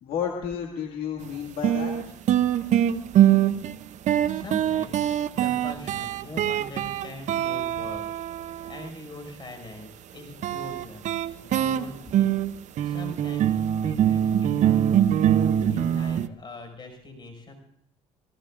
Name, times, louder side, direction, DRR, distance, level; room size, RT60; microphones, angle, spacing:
voice 1, 0.0-2.2, left 7 dB, 80° left, 0 dB, 2.1 m, -32 dB
sound 1, 1.2-1.3 1.6-8.9 10.4-16.3, right 10 dB, 55° right, 0.6 m, -23 dB
voice 2, 4.2-12.4 12.8-17.5, left 2 dB, 35° left, 4 dB, 5.4 m, -42 dB
29.5 x 18.0 x 2.5 m, 0.72 s
cardioid pair, 105°, 15 cm